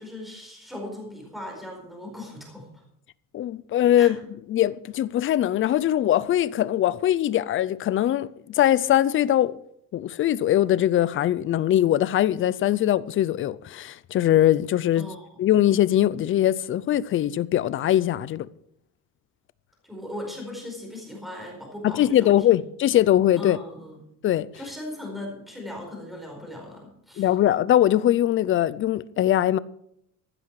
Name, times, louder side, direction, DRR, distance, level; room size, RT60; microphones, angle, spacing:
voice 1, 0.0-2.8 4.0-4.1 14.9-15.3 19.8-22.6 23.4-24.0 24.5-27.3, left 1 dB, ahead, 4.6 m, -38 dB
voice 2, 3.3-4.2 4.5-9.6 9.9-15.1 15.4-18.5 21.8-23.6 24.2-24.5 27.2-29.6, left 12 dB, 35° left, 0.5 m, -21 dB
15.0 x 12.0 x 4.8 m
cardioid pair, 165°, 34 cm